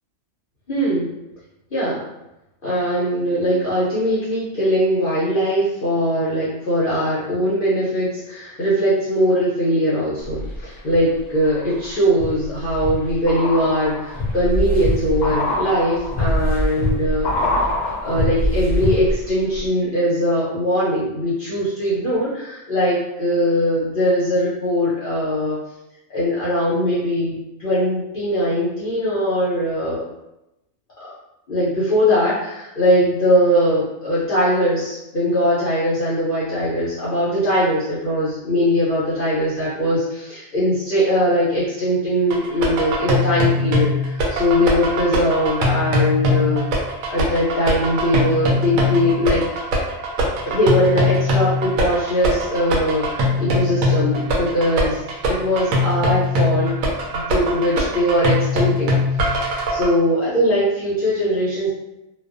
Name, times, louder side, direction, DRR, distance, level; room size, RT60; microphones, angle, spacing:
voice 1, 0.7-1.1 1.7-2.0 2.6-17.3 18.0-25.6 26.1-30.0 31.0-31.1 31.5-46.8 47.1-49.4 50.5-55.0 55.3-56.7 57.1-59.0 59.4-61.7, equal, 55° left, -10 dB, 0.7 m, -20 dB
sound 1, 10.2-11.0 11.4-19.3 19.6-19.7, left 1 dB, 85° left, 0.4 m, -24 dB
sound 2, 42.3-59.9, left 1 dB, 80° right, 1.0 m, -21 dB
2.5 x 2.2 x 2.4 m, 0.92 s
omnidirectional pair, 1.4 m